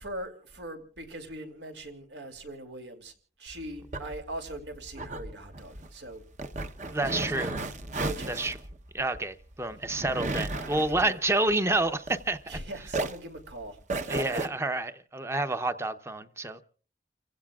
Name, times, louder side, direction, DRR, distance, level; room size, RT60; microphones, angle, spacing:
voice 1, 0.0-3.1 3.4-6.2 6.6-7.7 7.9-8.5 10.5-11.2 12.5-13.8, right 1 dB, 85° right, 2.7 m, -41 dB
sound 1, 3.5-12.6 12.9-14.5, right 2 dB, 40° right, 0.9 m, -35 dB
voice 2, 6.9-7.6 8.3-8.6 8.9-12.4 12.8-12.9 14.1-16.6, right 2 dB, 15° right, 0.7 m, -29 dB
30.0 x 16.0 x 2.4 m
head